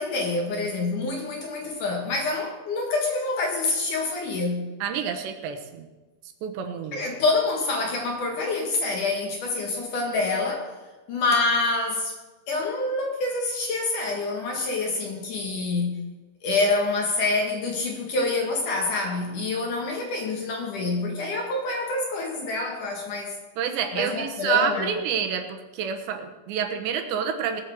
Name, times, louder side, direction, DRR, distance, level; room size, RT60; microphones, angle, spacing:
voice 1, 0.0-4.7 6.9-10.7 11.1-12.1 12.5-16.0 16.4-23.3 23.9-24.9, left 3 dB, 55° left, 1 dB, 2.7 m, -26 dB
voice 2, 4.8-5.9 6.4-7.0 23.6-27.6, right 7 dB, 80° right, 5 dB, 3.3 m, -28 dB
19.0 x 7.9 x 6.3 m, 1.2 s
omnidirectional pair, 5.1 m